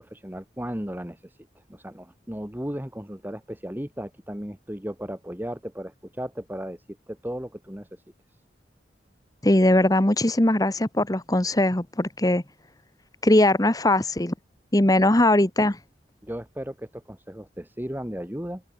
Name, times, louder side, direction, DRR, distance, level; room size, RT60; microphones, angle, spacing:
voice 1, 0.0-8.0 16.2-18.6, equal, 10° right, 2.4 m, -35 dB
voice 2, 9.4-12.4 13.2-14.3 14.7-15.8, left 1 dB, 20° left, 1.3 m, -20 dB
head